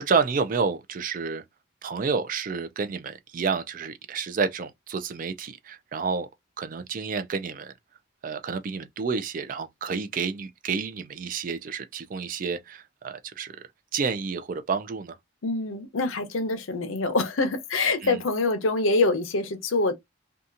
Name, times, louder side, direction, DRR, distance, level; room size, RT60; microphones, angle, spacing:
voice 1, 0.0-1.4 1.8-6.3 6.6-7.7 8.2-13.6 13.9-15.2 18.0-18.2, right 5 dB, 40° right, 0.3 m, -29 dB
voice 2, 15.4-19.9, left 3 dB, 85° left, 0.7 m, -25 dB
2.7 x 2.3 x 2.4 m
head